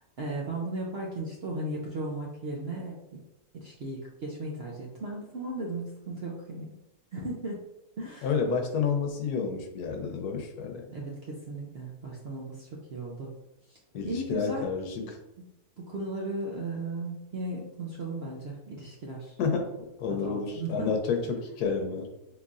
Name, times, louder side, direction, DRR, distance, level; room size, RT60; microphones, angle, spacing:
voice 1, 0.2-3.2 3.5-6.8 7.1-7.6 8.0-8.3 10.9-13.3 13.7-13.8 14.0-14.7 15.0-15.1 15.8-19.4 20.1-20.9, right 2 dB, 65° right, -2 dB, 0.6 m, -36 dB
voice 2, 8.2-10.8 13.9-15.2 19.4-22.1, left 5 dB, 80° left, 4 dB, 1.2 m, -30 dB
3.9 x 3.3 x 2.4 m, 0.91 s
omnidirectional pair, 1.6 m